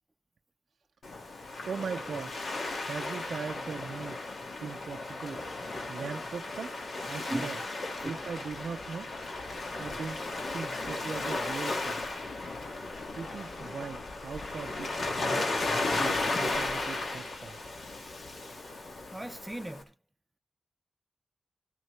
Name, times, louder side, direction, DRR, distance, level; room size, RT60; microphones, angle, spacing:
Waves surf, 1.0-19.8, left 2 dB, 60° left, 2.1 m, -35 dB
voice 1, 1.7-2.5 2.8-4.2 4.6-5.4 5.9-6.8 7.1-7.6 8.0-9.1 9.8-10.2 10.5-12.0 13.2-15.5 15.9-17.6, right 6 dB, 70° right, 0.5 m, -40 dB
voice 2, 19.1-19.9, right 1 dB, 10° right, 0.8 m, -38 dB
13.5 x 10.5 x 3.3 m
wide cardioid pair, 100°, 0 cm